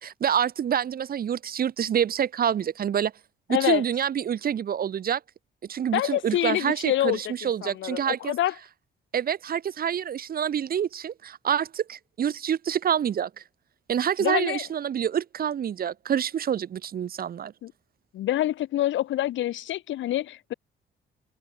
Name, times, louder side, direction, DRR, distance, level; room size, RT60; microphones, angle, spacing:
voice 1, 0.0-3.1 3.5-5.2 5.7-8.3 9.1-13.3 13.9-17.5, right 9 dB, 50° right, 0.8 m, -27 dB
voice 2, 3.5-3.8 5.9-8.5 14.2-14.6 17.6-17.7 18.1-20.5, left 13 dB, 75° left, 0.9 m, -26 dB
cardioid pair, 90°, 20 cm